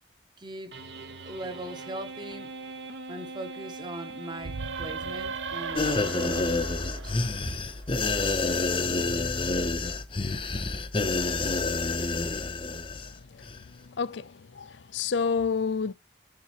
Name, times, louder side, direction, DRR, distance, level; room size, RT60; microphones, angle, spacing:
voice 1, 0.4-0.7 1.2-2.5 3.1-7.6, right 1 dB, 25° right, 1.0 m, -40 dB
sound 1, 0.7-6.5, right 3 dB, 65° right, 1.1 m, -42 dB
sound 2, 4.4-8.0, right 5 dB, 80° right, 0.7 m, -37 dB
sound 3, 5.7-13.1 13.4-13.6, left 3 dB, 25° left, 0.7 m, -28 dB
voice 2, 13.7-15.9, left 5 dB, 70° left, 0.5 m, -29 dB
10.5 x 3.8 x 3.0 m
head